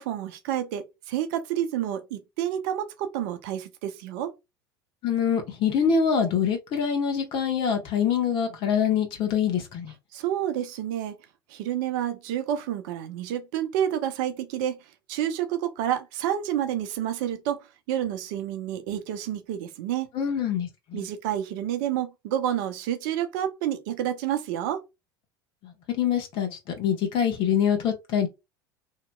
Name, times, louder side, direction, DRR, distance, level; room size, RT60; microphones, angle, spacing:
voice 1, 0.0-4.3 10.1-11.2 11.5-14.8 15.1-20.1 20.9-24.8, right 11 dB, 60° right, 0.6 m, -29 dB
voice 2, 5.0-9.9 20.1-21.0 25.6-28.3, left 7 dB, 50° left, 1.2 m, -25 dB
2.9 x 2.8 x 2.3 m
figure-of-eight pair, 70°, 12 cm